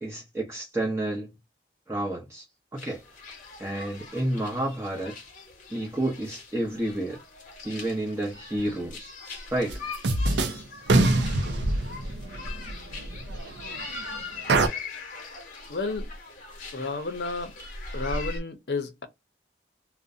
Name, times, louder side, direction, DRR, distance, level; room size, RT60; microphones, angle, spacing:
voice 1, 0.0-1.3 1.9-2.4 2.7-3.0 3.6-5.1 5.7-7.2 7.6-9.1 9.5-9.8, right 1 dB, 15° right, 0.6 m, -30 dB
sound 1, 2.8-18.4, left 3 dB, 45° left, 0.9 m, -41 dB
sound 2, 9.7-9.8 10.0-10.6 10.9-14.0 14.5-14.7, right 2 dB, 80° right, 0.5 m, -24 dB
voice 2, 15.7-16.1 16.7-17.5 17.9-19.1, left 3 dB, 65° left, 0.6 m, -31 dB
2.5 x 2.1 x 2.5 m
head